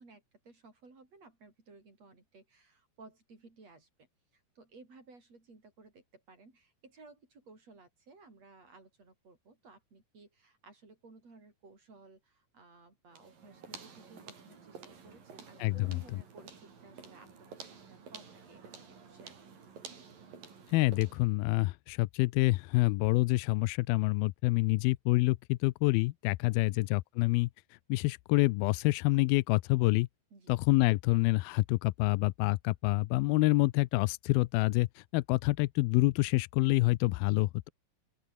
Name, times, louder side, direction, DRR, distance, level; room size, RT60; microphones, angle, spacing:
voice 1, 0.0-4.1 4.3-19.4 26.5-26.8 30.3-30.6, right 3 dB, 35° right, 8.1 m, -57 dB
sound 1, 13.1-21.3, right 6 dB, 55° right, 6.1 m, -51 dB
voice 2, 15.6-16.0 20.7-27.5 27.9-30.1 30.5-37.7, left 21 dB, 85° left, 2.1 m, -27 dB
open air
omnidirectional pair, 5.0 m